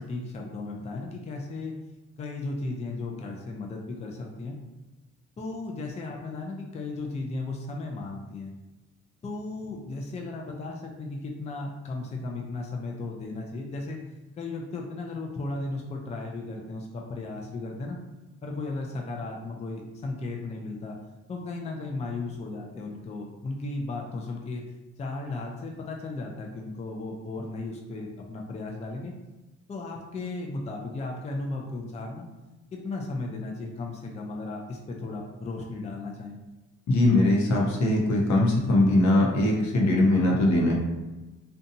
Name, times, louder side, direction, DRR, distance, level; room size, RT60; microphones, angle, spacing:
voice 1, 0.0-1.7 2.2-4.6 5.4-8.5 9.2-14.0 14.4-18.0 18.4-21.0 21.3-24.6 25.0-29.1 29.7-32.3 32.8-36.4, left 3 dB, 20° left, 0 dB, 0.4 m, -35 dB
voice 2, 36.9-40.7, left 1 dB, 70° left, -2 dB, 0.8 m, -21 dB
2.7 x 2.2 x 2.6 m, 1.1 s
cardioid pair, 90°, 30 cm